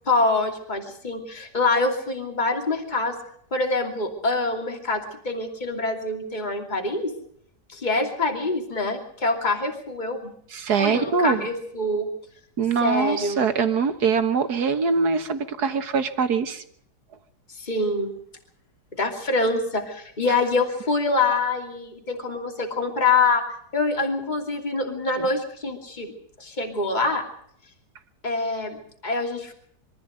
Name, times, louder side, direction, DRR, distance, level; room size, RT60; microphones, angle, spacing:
voice 1, 0.1-3.2 3.5-7.1 7.7-10.3 10.8-12.1 12.8-13.5 17.6-18.1 18.9-23.4 23.7-27.3 28.2-29.5, left 3 dB, 25° left, 3 dB, 2.9 m, -25 dB
voice 2, 10.5-11.5 12.6-16.6 25.2-25.3, right 5 dB, 70° right, 9 dB, 2.0 m, -23 dB
24.0 x 14.0 x 8.0 m, 0.66 s
omnidirectional pair, 1.8 m